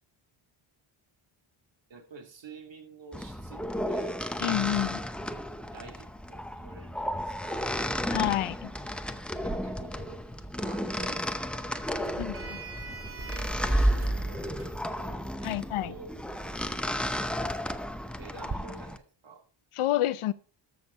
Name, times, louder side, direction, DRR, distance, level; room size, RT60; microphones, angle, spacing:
voice 1, 1.9-4.2 5.7-7.7 9.4-10.2 10.6-13.1 13.6-16.2 18.1-19.4, right 4 dB, 60° right, 2.7 m, -50 dB
sound 1, 3.1-19.0, equal, ahead, 0.7 m, -32 dB
voice 2, 4.4-5.0 8.1-8.7 12.2-12.3 15.4-15.9 19.8-20.3, left 14 dB, 80° left, 0.8 m, -28 dB
Sliding door, 9.4-18.5, right 3 dB, 25° right, 1.8 m, -45 dB
13.5 x 6.6 x 4.2 m
cardioid pair, 95°, 50 cm